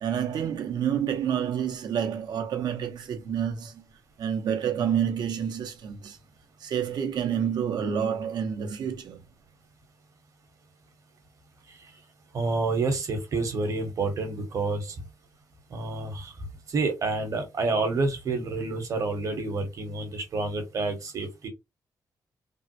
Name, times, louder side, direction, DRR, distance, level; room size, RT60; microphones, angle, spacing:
voice 1, 0.0-3.8 4.2-6.2 6.6-9.2, right 8 dB, 75° right, 0.7 m, -28 dB
voice 2, 12.3-15.0 15.7-16.3 16.7-21.5, right 3 dB, 50° right, 1.1 m, -28 dB
3.5 x 2.1 x 2.7 m
wide cardioid pair, 145°, 7 cm